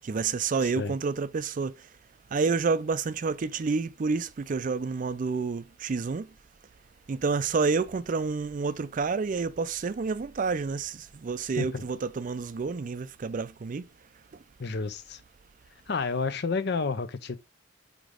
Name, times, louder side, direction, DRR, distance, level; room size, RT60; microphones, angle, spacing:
voice 1, 0.0-1.7 2.3-6.3 7.1-13.8, right 4 dB, 45° right, 0.4 m, -29 dB
voice 2, 14.6-15.2 15.9-17.4, left 4 dB, 60° left, 0.7 m, -30 dB
5.1 x 5.0 x 3.7 m
head